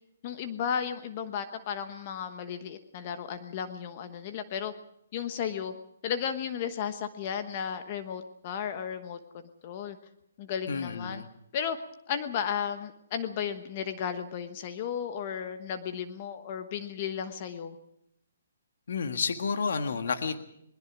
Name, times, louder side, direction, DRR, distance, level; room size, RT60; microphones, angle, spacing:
voice 1, 0.2-4.7 5.1-5.7 6.0-10.0 10.4-11.2 11.5-11.8 12.1-17.8, left 8 dB, 35° left, 9 dB, 1.2 m, -34 dB
voice 2, 10.7-11.3 18.9-20.4, left 5 dB, 65° left, 7 dB, 1.7 m, -30 dB
21.5 x 21.0 x 6.2 m, 0.75 s
hypercardioid pair, 160°, 0 cm